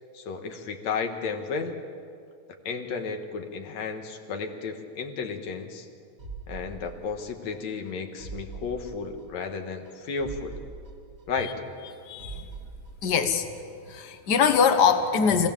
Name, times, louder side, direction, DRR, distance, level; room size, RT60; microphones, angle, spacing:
voice 1, 0.1-1.8 2.7-5.9 6.5-10.6 11.3-11.5, left 5 dB, 70° left, 5 dB, 2.7 m, -33 dB
sound 1, 6.2-7.6 7.9-8.0 8.2-9.6 9.9-10.0 10.2-11.9 12.2-13.6 13.9-14.0, right 4 dB, 40° right, 1.9 m, -43 dB
voice 2, 12.0-12.5 13.0-13.5 13.9-15.5, left 6 dB, 50° left, 7 dB, 1.2 m, -22 dB
26.5 x 17.5 x 7.3 m, 2.3 s
omnidirectional pair, 3.4 m